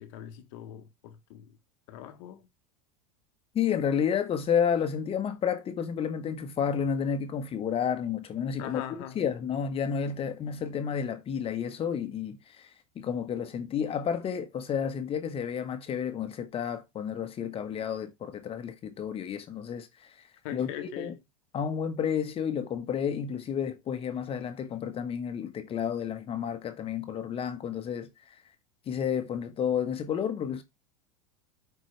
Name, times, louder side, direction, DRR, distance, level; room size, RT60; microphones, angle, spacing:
voice 1, 0.0-1.6 1.9-2.5 8.6-9.2 20.4-21.2, left 11 dB, 65° left, 1.2 m, -41 dB
voice 2, 3.5-8.8 9.1-12.7 12.9-20.3 20.5-21.1 21.5-28.3 28.9-30.6, left 7 dB, 35° left, 1.2 m, -31 dB
11.5 x 4.6 x 3.2 m
hypercardioid pair, 95°, 18 cm